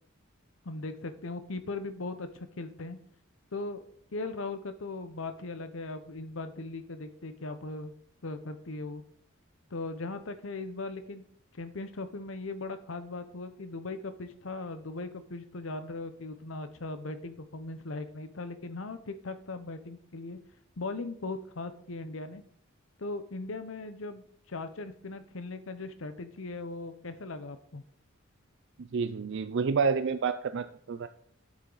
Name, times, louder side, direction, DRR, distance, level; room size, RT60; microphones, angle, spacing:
voice 1, 0.6-3.0 3.5-3.8 4.1-7.9 8.2-9.0 9.7-11.2 11.5-20.4 20.8-22.4 23.0-27.8, left 3 dB, 65° left, 10 dB, 0.8 m, -39 dB
voice 2, 28.8-31.1, right 5 dB, 60° right, 10 dB, 0.4 m, -29 dB
9.7 x 8.1 x 4.0 m, 0.64 s
head